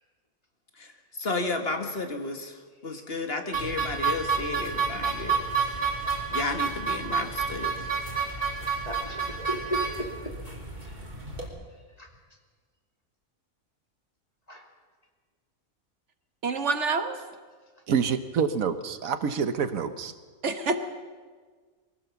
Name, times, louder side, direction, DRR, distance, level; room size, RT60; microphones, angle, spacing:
voice 1, 1.2-5.8 6.3-7.9, left 3 dB, 45° left, 5 dB, 1.7 m, -33 dB
sound 1, 3.5-11.5, right 5 dB, 30° right, 3.1 m, -30 dB
voice 2, 8.9-10.3 10.8-10.9 12.0-12.1 14.5-14.7, equal, 30° left, 2 dB, 2.5 m, -35 dB
voice 3, 16.4-17.2 20.4-20.8, right 4 dB, 60° right, 8 dB, 1.4 m, -27 dB
voice 4, 17.9-20.1, right 6 dB, 80° right, 11 dB, 1.4 m, -27 dB
22.5 x 16.5 x 7.0 m, 1.5 s
omnidirectional pair, 1.4 m